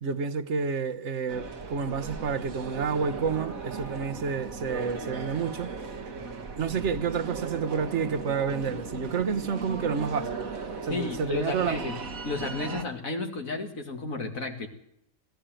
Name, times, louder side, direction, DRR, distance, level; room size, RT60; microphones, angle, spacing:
voice 1, 0.0-5.7 6.6-10.5 10.8-11.9, right 6 dB, 60° right, 1.4 m, -29 dB
sound 1, 1.3-12.8, right 4 dB, 80° right, 2.3 m, -37 dB
voice 2, 10.9-12.0 12.2-14.7, left 3 dB, 80° left, 2.5 m, -32 dB
20.5 x 14.0 x 9.1 m
omnidirectional pair, 1.4 m